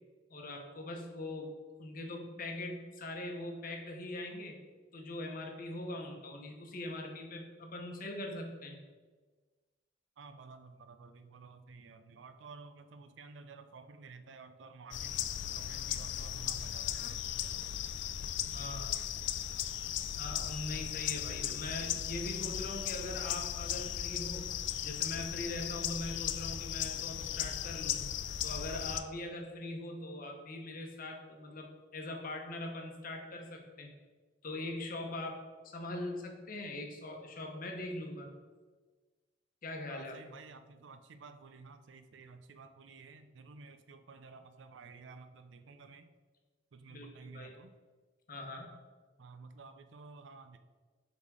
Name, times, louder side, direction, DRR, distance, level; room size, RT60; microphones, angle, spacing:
voice 1, 0.3-1.5 1.8-4.6 4.9-8.8 18.5-18.9 20.2-24.5 24.8-28.0 28.4-33.9 34.4-35.4 35.7-38.3 39.6-40.2 46.9-47.6 48.3-48.7, left 1 dB, 50° left, 2 dB, 1.0 m, -41 dB
voice 2, 10.2-17.7 18.6-19.2 39.9-46.1 46.7-47.7 49.2-50.6, right 4 dB, 70° right, 9 dB, 0.5 m, -53 dB
sound 1, 14.9-29.0, left 10 dB, 65° left, 0.3 m, -37 dB
5.5 x 4.1 x 4.7 m, 1.4 s
head